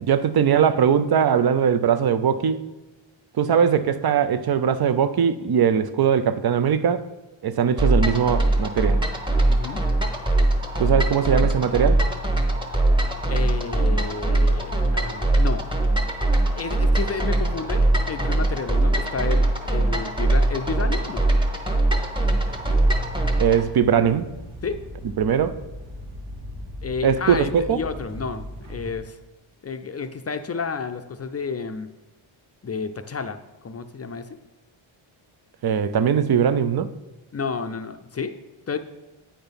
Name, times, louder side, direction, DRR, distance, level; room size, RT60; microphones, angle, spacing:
voice 1, 0.1-2.7 3.4-7.1 7.4-9.0 10.8-12.0 23.4-24.3 25.2-25.5 27.0-27.8 35.6-36.9, right 7 dB, 50° right, 13 dB, 0.6 m, -20 dB
sound 1, 7.8-23.6, right 2 dB, 10° right, 1.1 m, -21 dB
voice 2, 9.4-9.8 13.3-15.6 16.5-21.3 24.6-24.8 26.8-29.2 29.6-31.9 32.6-34.3 37.3-38.4 38.7-38.8, left 5 dB, 30° left, 8 dB, 0.5 m, -31 dB
sound 2, 22.3-28.9, equal, 75° right, 1.5 m, -38 dB
8.9 x 4.4 x 5.2 m, 1.0 s
cardioid pair, 80°, 49 cm